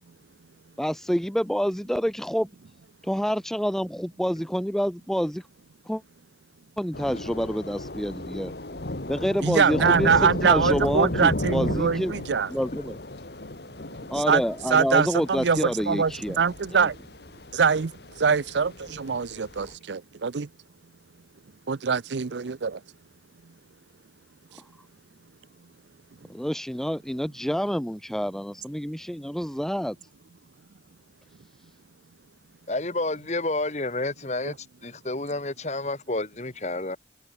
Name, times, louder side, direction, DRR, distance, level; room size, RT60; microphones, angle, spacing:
voice 1, 0.8-2.5 3.0-5.5 5.9-6.0 6.8-8.5 9.1-12.1 12.5-13.0 14.1-16.4 16.7-16.9 24.6-24.7 26.3-30.0, equal, ahead, 0.7 m, -28 dB
Thunder / Rain, 6.9-19.7, left 1 dB, 65° left, 2.0 m, -34 dB
voice 2, 9.4-12.5 14.3-14.4 14.7-17.0 17.5-20.5 21.7-22.8, right 5 dB, 85° right, 0.6 m, -23 dB
voice 3, 32.7-34.6 34.8-37.0, left 2 dB, 40° left, 1.8 m, -29 dB
head